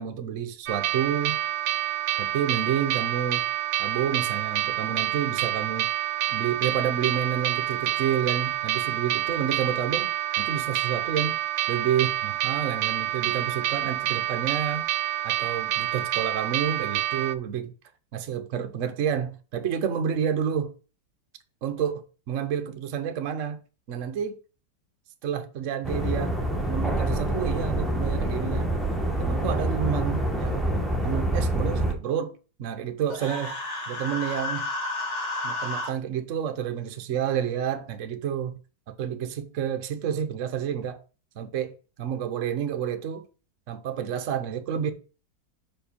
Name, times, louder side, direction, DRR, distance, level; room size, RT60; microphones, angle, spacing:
voice 1, 0.0-1.4 2.2-3.4 3.8-5.9 6.3-10.1 10.4-11.4 11.7-14.9 15.2-17.7 18.1-20.7 21.6-23.6 23.9-24.4 25.2-26.4 26.7-28.7 29.2-30.7 31.0-33.6 33.9-34.7 35.4-38.6 38.9-41.0 41.3-43.3 43.7-44.9, right 8 dB, 60° right, 0.8 m, -29 dB
sound 1, 0.7-17.3, right 13 dB, 75° right, 1.2 m, -28 dB
sound 2, 25.8-31.9, right 1 dB, ahead, 0.6 m, -26 dB
Human voice, 33.1-35.9, left 2 dB, 85° left, 3.4 m, -31 dB
5.3 x 4.9 x 5.2 m
omnidirectional pair, 2.1 m